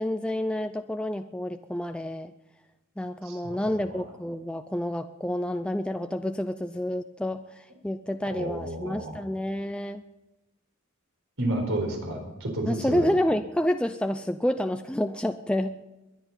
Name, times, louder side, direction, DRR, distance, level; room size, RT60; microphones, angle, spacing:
voice 1, 0.0-2.3 3.0-10.0 12.7-15.8, left 1 dB, 5° left, 7 dB, 0.4 m, -29 dB
voice 2, 3.2-4.0 8.3-9.2 11.4-13.1, right 1 dB, 65° right, 2 dB, 4.5 m, -31 dB
22.0 x 10.5 x 5.6 m, 1.0 s
head